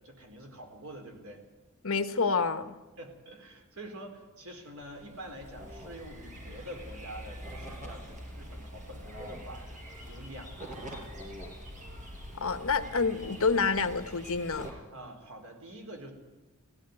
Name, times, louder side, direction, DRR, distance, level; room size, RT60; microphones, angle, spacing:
voice 1, 0.0-1.4 3.0-11.1 14.9-16.1, right 1 dB, 70° right, 4 dB, 4.4 m, -46 dB
voice 2, 1.8-2.8 12.3-14.7, left 4 dB, 65° left, 10 dB, 1.2 m, -28 dB
sound 1, 4.8-14.7, equal, 35° right, 5.9 m, -44 dB
17.5 x 15.5 x 9.7 m, 1.1 s
head